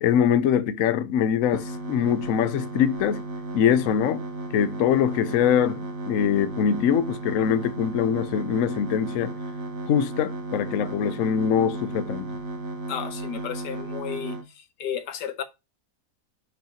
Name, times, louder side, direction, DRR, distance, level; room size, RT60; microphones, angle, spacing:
voice 1, 0.0-3.2 3.5-4.3 4.5-5.8 6.1-9.3 9.9-12.3, left 8 dB, 65° left, 0.9 m, -23 dB
sound 1, 1.5-14.4, right 1 dB, 55° right, 1.6 m, -34 dB
voice 2, 12.9-14.4 14.8-15.4, left 8 dB, 85° left, 1.5 m, -32 dB
7.6 x 5.3 x 2.9 m
omnidirectional pair, 1.8 m